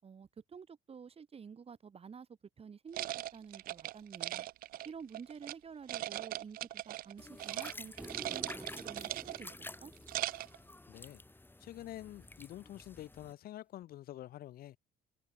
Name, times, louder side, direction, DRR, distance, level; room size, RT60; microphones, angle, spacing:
voice 1, 0.0-2.3 2.6-4.5 4.8-9.5 9.8-9.9, right 6 dB, 35° right, 5.9 m, -50 dB
sound 1, 2.9-5.6 5.9-7.1 7.4-7.7 8.0-9.5 9.9-10.6, right 15 dB, 60° right, 0.4 m, -39 dB
sound 2, 7.2-13.3, left 2 dB, 10° left, 5.2 m, -51 dB
sound 3, 8.0-11.2 13.8-13.9, right 1 dB, 10° right, 1.3 m, -51 dB
voice 2, 10.9-11.2 11.6-14.8, left 13 dB, 65° left, 1.0 m, -47 dB
cardioid pair, 110°, 17 cm